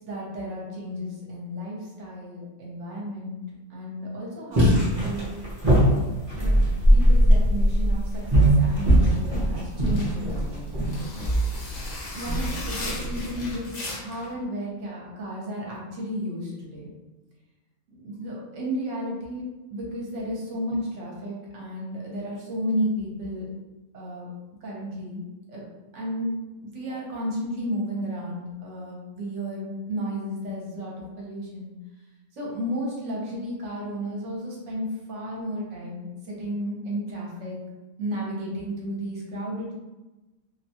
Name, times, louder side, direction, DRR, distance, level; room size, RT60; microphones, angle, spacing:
voice 1, 0.0-3.4 3.7-5.3 5.9-6.1 6.3-11.1 12.1-17.0 17.9-23.5 23.9-24.3 24.6-25.2 25.5-25.6 25.9-26.3 26.6-31.7 32.3-37.6 38.0-39.7, equal, 60° right, -3 dB, 1.0 m, -33 dB
sound 1, 4.5-13.6, equal, 35° right, 0.6 m, -21 dB
sound 2, 9.8-14.3, left 2 dB, 60° left, 1.0 m, -37 dB
2.6 x 2.2 x 2.8 m, 1.1 s
omnidirectional pair, 1.5 m